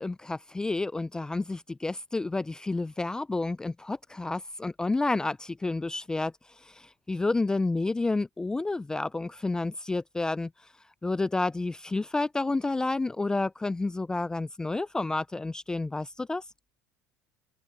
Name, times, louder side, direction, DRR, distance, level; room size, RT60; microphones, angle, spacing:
voice 1, 0.0-6.3 6.6-10.5 11.0-16.4, left 3 dB, 10° left, 0.4 m, -30 dB
supercardioid pair, 105°, 6 cm